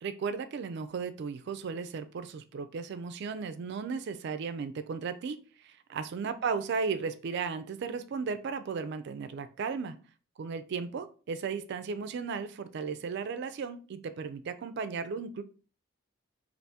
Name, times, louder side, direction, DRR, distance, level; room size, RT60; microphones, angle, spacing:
voice 1, 0.0-10.0 10.4-15.4, right 5 dB, 55° right, 11 dB, 0.3 m, -35 dB
3.4 x 2.5 x 2.7 m, 0.37 s
head